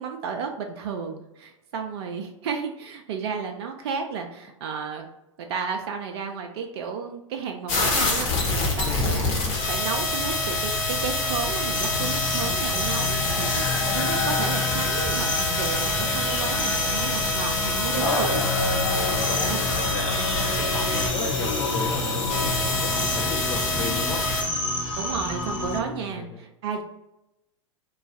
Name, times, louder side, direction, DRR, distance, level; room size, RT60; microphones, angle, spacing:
voice 1, 0.0-5.1 5.4-18.4 19.4-19.6 25.0-26.8, right 6 dB, 55° right, 3 dB, 0.4 m, -33 dB
sound 1, 7.7-24.4, left 2 dB, 45° left, 1.1 m, -26 dB
sound 2, 11.7-25.8, left 2 dB, 80° left, 0.9 m, -29 dB
voice 2, 13.2-14.2 18.9-24.2 25.8-26.4, left 4 dB, 20° left, -1 dB, 0.5 m, -35 dB
3.1 x 2.3 x 3.9 m, 0.91 s
figure-of-eight pair, 95°, 16 cm